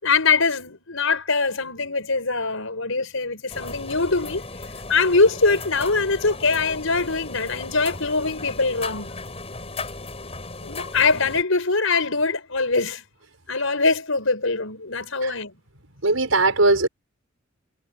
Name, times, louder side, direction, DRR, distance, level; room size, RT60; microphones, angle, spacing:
voice 1, 0.0-4.4 4.9-9.1 10.6-13.0 13.5-15.5, left 4 dB, 75° left, 5.6 m, -22 dB
sound 1, 3.5-11.4, left 3 dB, 30° left, 7.9 m, -36 dB
voice 2, 16.0-16.9, right 2 dB, 80° right, 5.6 m, -19 dB
head